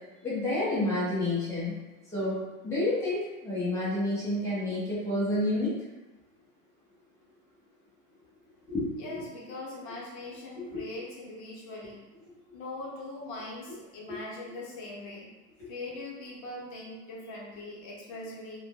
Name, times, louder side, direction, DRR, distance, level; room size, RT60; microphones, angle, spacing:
voice 1, 0.2-1.7 2.1-5.7 8.7-9.2 10.6-10.8 14.1-14.2 15.6-15.7, left 1 dB, 5° left, -9 dB, 0.5 m, -29 dB
voice 2, 9.0-12.0 12.5-15.3 15.7-18.6, left 2 dB, 35° left, -4 dB, 0.8 m, -41 dB
2.2 x 2.0 x 2.7 m, 1.1 s
hypercardioid pair, 125°, 46 cm